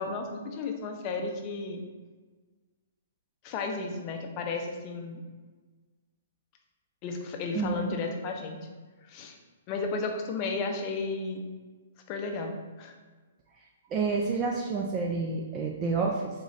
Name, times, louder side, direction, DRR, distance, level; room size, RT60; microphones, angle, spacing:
voice 1, 0.0-1.8 3.4-5.2 7.0-8.6 9.1-9.4 9.7-11.4 12.1-12.9, left 3 dB, 30° left, 3 dB, 0.6 m, -33 dB
voice 2, 7.5-8.0 13.9-16.3, right 4 dB, 25° right, 0 dB, 0.4 m, -29 dB
3.6 x 3.1 x 3.9 m, 1.4 s
hypercardioid pair, 150°, 0 cm